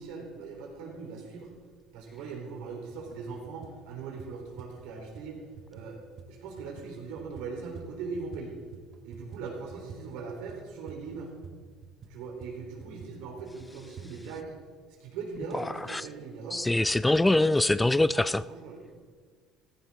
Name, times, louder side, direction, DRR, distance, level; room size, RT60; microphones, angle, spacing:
voice 1, 0.0-1.5 1.9-6.0 6.3-8.6 9.0-11.3 12.1-14.6 15.0-16.7 17.1-17.3 18.1-19.1, right 4 dB, 80° right, 1 dB, 3.8 m, -40 dB
sound 1, 2.9-3.2 3.4-8.5 8.7-14.1, right 5 dB, 55° right, 1.7 m, -48 dB
voice 2, 15.5-16.0 16.5-18.4, left 2 dB, 10° left, 16 dB, 0.4 m, -24 dB
15.5 x 15.0 x 3.8 m, 1.5 s
supercardioid pair, 90°, 0 cm